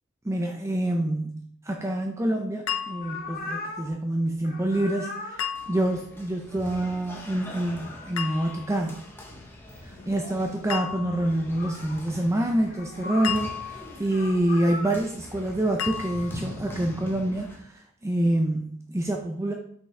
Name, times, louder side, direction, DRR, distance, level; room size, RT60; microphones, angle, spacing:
voice 1, 0.2-5.4 5.7-9.0 9.8-19.5, right 1 dB, 15° right, 2 dB, 0.5 m, -27 dB
sound 1, 2.7-3.4 5.4-6.1 8.2-8.8 10.7-11.4 13.2-14.1 15.8-16.5, left 9 dB, 75° left, 0.7 m, -33 dB
sound 2, 3.0-3.9 4.4-5.4 7.4-8.3 9.2-9.3 9.7-10.4 11.2-12.0 12.7-13.4 14.0-14.9, left 2 dB, 45° left, 1.0 m, -39 dB
sound 3, 5.5-17.6, left 1 dB, 10° left, 0.9 m, -43 dB
6.1 x 5.6 x 3.3 m, 0.67 s
head